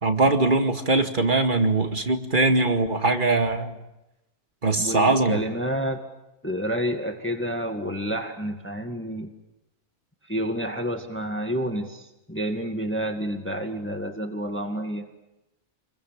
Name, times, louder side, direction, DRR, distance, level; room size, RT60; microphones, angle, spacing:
voice 1, 0.0-3.7 4.6-5.4, right 3 dB, 35° right, 5 dB, 2.3 m, -21 dB
voice 2, 4.8-6.0 6.4-9.3 10.3-15.1, equal, 10° left, 4 dB, 1.9 m, -29 dB
29.5 x 22.5 x 7.5 m, 0.94 s
omnidirectional pair, 1.5 m